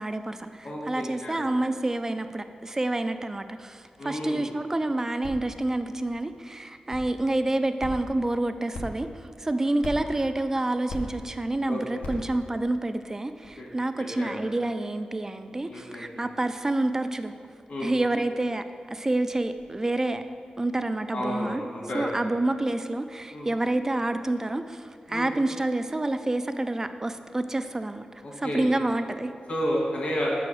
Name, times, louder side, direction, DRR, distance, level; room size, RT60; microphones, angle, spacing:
voice 1, 0.0-9.1 9.4-17.3 17.8-18.6 18.9-20.2 20.6-21.6 21.9-28.0 28.4-29.3, right 2 dB, 20° right, 9 dB, 0.3 m, -28 dB
voice 2, 0.6-1.4 4.0-4.5 9.6-9.7 11.7-11.8 13.6-13.7 14.2-14.4 15.6-16.2 17.7-17.9 21.1-22.2 23.3-23.5 25.1-25.3 28.2-28.8 29.5-30.4, equal, 65° left, -4 dB, 2.0 m, -31 dB
sound 1, 4.6-21.0, left 1 dB, 85° left, 1.0 m, -45 dB
6.1 x 4.8 x 6.3 m, 2.3 s
wide cardioid pair, 125°, 2 cm